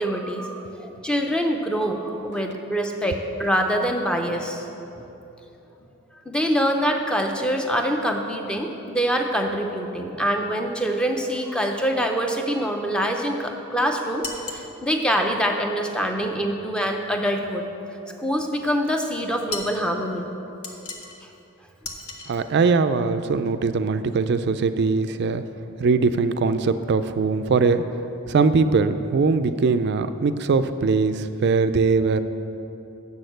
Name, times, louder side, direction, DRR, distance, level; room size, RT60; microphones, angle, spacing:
voice 1, 0.0-4.7 4.9-5.0 6.3-17.7 18.1-20.3, equal, 5° left, 3 dB, 0.5 m, -25 dB
sound 1, 14.2-14.7 19.5-19.8 20.6-21.2 21.8-22.3, left 3 dB, 80° left, 1.0 m, -34 dB
voice 2, 22.3-25.4 25.8-27.8 28.3-32.2, right 4 dB, 50° right, 11 dB, 0.3 m, -21 dB
7.1 x 6.4 x 7.8 m, 3.0 s
head